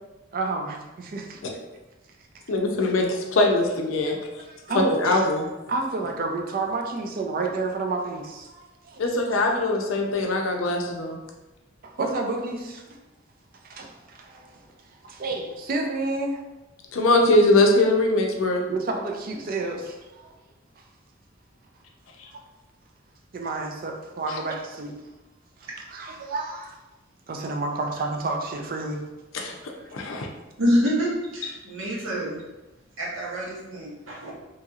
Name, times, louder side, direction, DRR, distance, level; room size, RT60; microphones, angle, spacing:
voice 1, 0.3-1.4 4.0-4.2 4.5-5.2 5.7-9.0 11.8-12.8 13.6-14.6 15.0-16.4 18.7-20.3 20.8-20.9 22.3-22.4 23.3-25.0 25.9-26.8 27.3-29.0 29.4-29.9, right 3 dB, 45° right, 2 dB, 0.4 m, -30 dB
voice 2, 2.5-4.2 4.7-5.5 9.0-11.2 16.9-18.6 29.3-29.5 29.9-30.3, left 2 dB, 80° left, 2 dB, 0.5 m, -21 dB
voice 3, 30.6-32.4 33.0-34.3, equal, 80° right, -4 dB, 0.9 m, -26 dB
2.8 x 2.8 x 2.3 m, 1.1 s
head